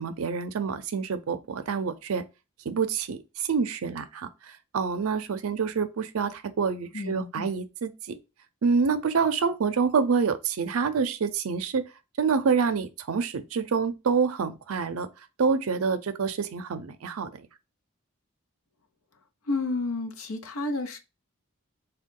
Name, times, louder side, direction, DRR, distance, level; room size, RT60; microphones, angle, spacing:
voice 1, 0.0-2.2 2.7-8.2 8.6-11.8 12.2-15.1 15.4-17.5, right 5 dB, 80° right, 0.5 m, -27 dB
voice 2, 6.9-7.5 19.5-21.0, left 3 dB, 75° left, 0.6 m, -31 dB
3.6 x 2.3 x 3.6 m
head